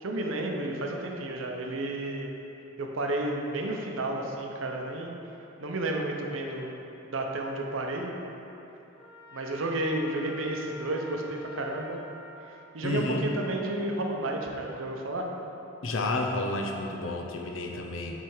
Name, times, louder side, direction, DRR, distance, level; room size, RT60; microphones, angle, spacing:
voice 1, 0.0-2.3 2.8-5.1 5.6-6.7 7.0-8.1 9.3-12.0 12.4-15.2 18.0-18.2, right 1 dB, 80° right, 1 dB, 0.7 m, -32 dB
Trumpet, 9.0-12.3, right 1 dB, 30° left, 1.3 m, -46 dB
voice 2, 12.8-13.2 15.8-18.2, left 2 dB, 75° left, 2 dB, 0.7 m, -31 dB
7.6 x 3.4 x 4.7 m, 3.0 s
head